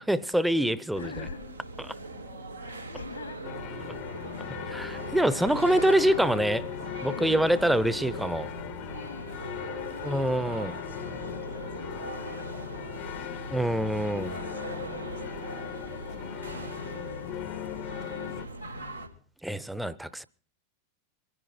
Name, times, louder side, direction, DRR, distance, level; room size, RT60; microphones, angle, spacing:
voice 1, 0.0-1.1 4.7-6.6 7.0-8.5 10.0-10.7 13.5-14.3 19.4-20.2, right 1 dB, 5° right, 0.8 m, -25 dB
voice 2, 0.9-1.5 2.6-3.4 5.3-5.6 7.0-7.6 8.7-19.1, left 5 dB, 70° left, 1.8 m, -47 dB
sound 1, 0.9-19.1, right 2 dB, 90° right, 3.0 m, -40 dB
sound 2, 3.4-18.5, left 13 dB, 45° left, 0.9 m, -39 dB
24.0 x 11.0 x 4.3 m
figure-of-eight pair, 90°, 0 cm